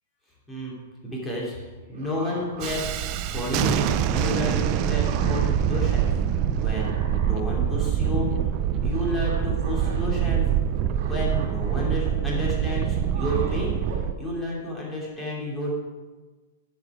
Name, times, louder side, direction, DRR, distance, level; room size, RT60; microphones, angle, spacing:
voice 1, 1.0-1.5 1.9-3.0 3.3-3.8 4.1-6.1 6.6-6.9 7.2-8.3 8.8-10.5 11.0-13.8 14.2-15.7, left 1 dB, 10° left, -4 dB, 2.6 m, -31 dB
sound 1, 1.9-2.7 3.1-4.7 5.0-6.1 6.4-14.3, right 4 dB, 50° right, 1.9 m, -41 dB
Thunderstorm, 2.6-14.1, right 9 dB, 35° right, 0.4 m, -25 dB
9.6 x 7.0 x 4.8 m, 1.3 s
hypercardioid pair, 155°, 0 cm